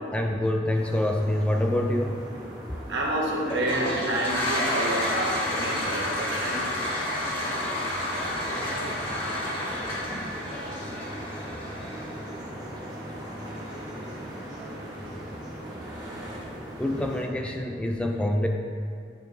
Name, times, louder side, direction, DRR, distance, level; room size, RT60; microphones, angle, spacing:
voice 1, 0.1-2.3 9.7-10.3 14.9-15.8 16.8-18.5, left 1 dB, 5° left, 2 dB, 0.3 m, -27 dB
sound 1, 0.7-17.3, equal, 20° right, 1.3 m, -39 dB
voice 2, 2.9-6.7, right 1 dB, 75° right, -3 dB, 1.2 m, -29 dB
Toilet flush, 3.4-12.3, left 1 dB, 30° left, 1.5 m, -30 dB
sound 2, 4.9-11.1, left 1 dB, 80° left, 0.9 m, -42 dB
8.6 x 4.4 x 3.3 m, 2.4 s
head